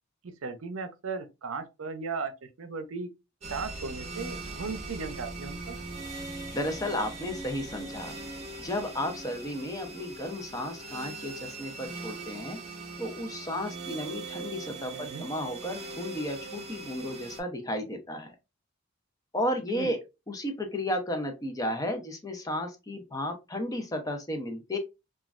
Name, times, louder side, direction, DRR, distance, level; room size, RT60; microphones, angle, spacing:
voice 1, 0.2-2.3 2.6-3.1 3.5-5.8 14.9-15.3 19.8-19.9, right 4 dB, 70° right, 0.6 m, -36 dB
sound 1, 3.4-17.4, right 3 dB, 30° right, 0.8 m, -40 dB
voice 2, 6.5-8.1 8.6-12.6 13.0-18.3 19.3-24.8, left 1 dB, 15° left, 0.5 m, -33 dB
3.0 x 2.3 x 2.3 m
head